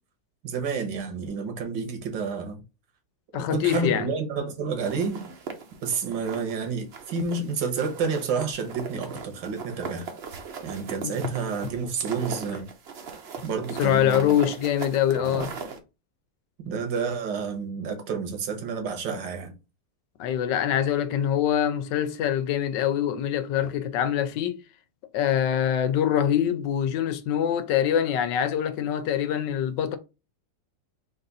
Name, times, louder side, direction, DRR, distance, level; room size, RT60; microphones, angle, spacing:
voice 1, 0.4-2.6 3.4-5.3 5.8-10.1 10.6-12.7 13.4-14.4 15.1-15.5 16.6-19.5, right 5 dB, 80° right, 1.7 m, -30 dB
voice 2, 3.3-4.1 11.0-11.2 13.8-15.5 20.2-24.6 25.1-30.0, left 10 dB, 80° left, 1.3 m, -24 dB
sound 1, 4.8-6.6 6.9-7.5 7.8-15.8, right 5 dB, 55° right, 0.7 m, -39 dB
4.0 x 2.6 x 3.9 m
omnidirectional pair, 1.9 m